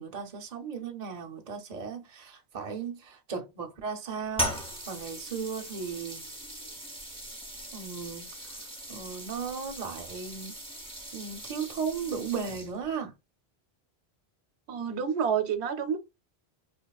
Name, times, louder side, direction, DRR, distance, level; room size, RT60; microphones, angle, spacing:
voice 1, 0.0-6.2 7.7-8.6 8.9-10.5 11.1-13.1, right 6 dB, 40° right, 0.7 m, -36 dB
sound 1, 4.3-12.9, right 1 dB, 5° left, 0.6 m, -39 dB
voice 2, 14.7-16.0, right 7 dB, 80° right, 0.9 m, -28 dB
4.3 x 2.7 x 2.3 m
omnidirectional pair, 1.1 m